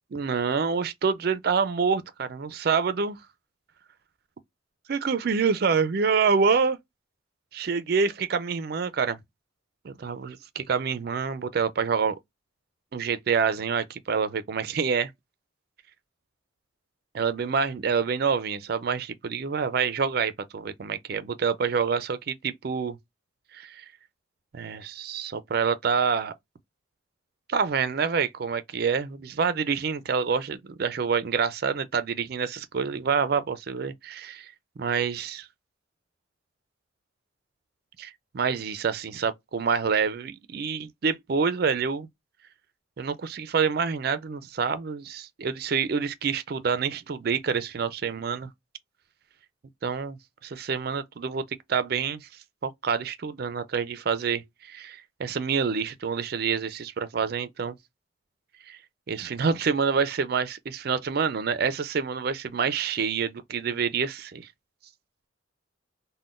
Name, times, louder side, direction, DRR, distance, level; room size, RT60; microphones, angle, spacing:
voice 1, 0.1-3.2 4.9-6.8 7.5-9.2 9.8-12.2 12.9-15.1 17.1-23.0 23.5-23.8 24.5-26.3 27.5-35.5 38.0-42.1 43.0-48.5 49.8-51.4 51.7-52.2 52.6-57.8 58.7-58.8 59.1-64.5, right 5 dB, 50° right, 0.4 m, -27 dB
3.6 x 2.1 x 2.3 m
head